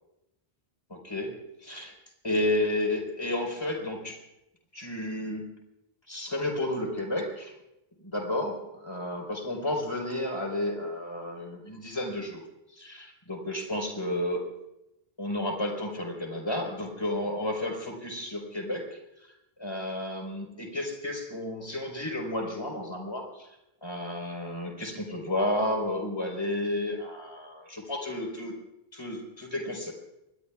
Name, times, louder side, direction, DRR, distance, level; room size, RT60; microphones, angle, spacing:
voice 1, 0.9-1.9 2.2-4.2 4.7-5.5 6.1-7.5 8.0-12.4 12.7-14.4 15.2-19.3 19.6-28.5 28.9-29.9, left 1 dB, 25° left, 1 dB, 4.6 m, -32 dB
26.0 x 21.0 x 2.4 m, 0.87 s
omnidirectional pair, 1.0 m